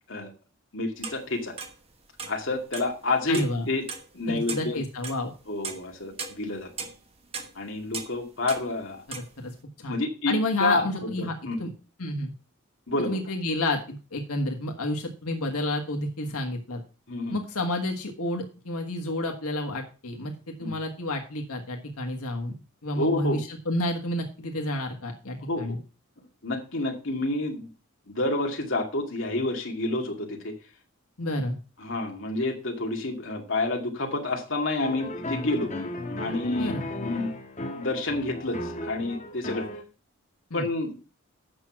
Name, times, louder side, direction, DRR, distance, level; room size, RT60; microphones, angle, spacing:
voice 1, 0.7-1.5 2.3-3.8 4.1-4.8 5.5-6.9 7.6-9.0 9.9-10.8 11.2-11.6 12.9-13.2 17.1-17.4 20.6-20.7 23.0-23.4 25.5-25.7 26.4-27.7 28.1-30.5 31.8-35.7 36.2-36.7 37.0-37.3 37.8-39.7 40.5-40.9, left 2 dB, 55° left, 1 dB, 2.2 m, -29 dB
sound 1, 1.0-1.8 2.2-3.0 3.3-3.6 3.9-4.1 4.5-4.7 5.0-5.2 5.6-8.9 9.1-9.3, right 5 dB, 25° right, 1.1 m, -37 dB
voice 2, 3.3-3.7 4.3-5.3 9.1-9.5 9.8-10.0 10.3-11.3 11.6-11.7 12.0-12.3 13.0-16.8 17.3-22.5 22.8-25.8 31.2-31.6 36.6-36.9 40.5-40.7, left 1 dB, 90° left, 2 dB, 1.7 m, -30 dB
sound 2, 34.8-39.8, left 1 dB, 35° left, 1.3 m, -35 dB
8.6 x 6.2 x 6.0 m, 0.34 s
head